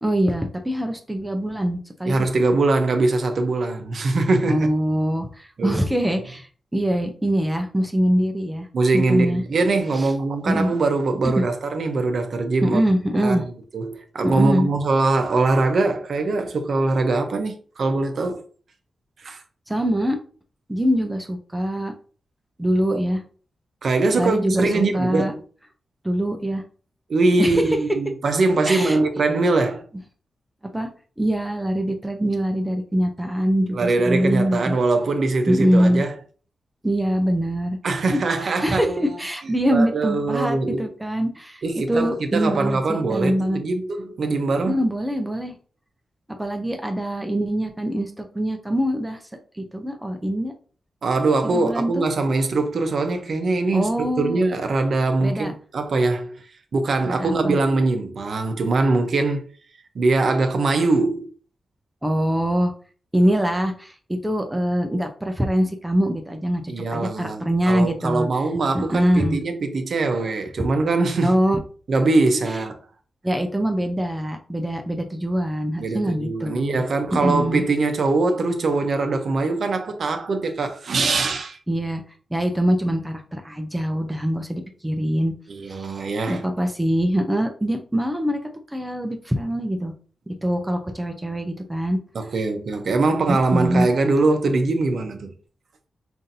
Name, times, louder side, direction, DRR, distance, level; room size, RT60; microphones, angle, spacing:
voice 1, 0.0-2.3 4.5-6.5 6.7-8.7 8.9-9.4 10.0-10.1 10.5-10.8 11.3-11.4 12.6-13.4 14.2-14.7 19.7-20.2 20.7-21.9 22.6-23.2 24.2-25.3 26.0-26.6 27.4-27.8 28.7-29.0 30.7-30.9 31.2-34.7 35.5-36.0 36.8-37.8 38.1-41.6 41.9-43.6 44.7-45.5 46.4-49.2 49.6-50.5 51.4-52.1 53.7-54.4 55.2-55.5 57.1-57.6 62.0-62.7 63.1-66.6 66.9-68.3 68.7-69.4 71.2-71.6 73.2-76.8 77.2-77.6 81.7-82.0 82.3-85.3 85.7-88.4 88.7-89.9 90.4-92.0 93.3-93.9, equal, 10° right, 0.5 m, -23 dB
voice 2, 2.0-4.7 5.6-5.8 8.7-12.8 13.1-13.5 13.7-18.4 19.2-19.4 22.9-23.0 23.8-25.4 27.1-29.8 33.7-36.1 37.8-39.2 39.7-40.9 41.6-44.8 51.0-56.4 56.7-59.4 59.9-61.3 66.7-71.4 71.9-72.8 75.8-81.6 85.5-86.4 92.1-95.3, right 3 dB, 55° right, 0.6 m, -22 dB
5.5 x 2.6 x 2.7 m
wide cardioid pair, 155°, 0 cm